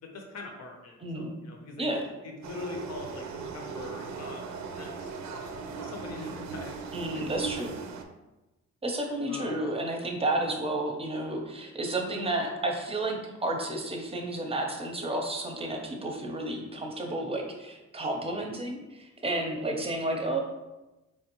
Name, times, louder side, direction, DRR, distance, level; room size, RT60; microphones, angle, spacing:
voice 1, 0.0-1.9 2.2-5.1 5.3-5.4 5.8-7.2 9.3-9.6, left 3 dB, 60° left, 2 dB, 0.8 m, -42 dB
voice 2, 1.0-1.3 1.8-2.1 6.9-7.7 8.8-20.4, right 1 dB, 20° right, 2 dB, 0.7 m, -31 dB
sound 1, 2.4-8.0, right 5 dB, 65° right, 0.5 m, -38 dB
4.5 x 2.5 x 3.0 m, 1.0 s
cardioid pair, 90°, 30 cm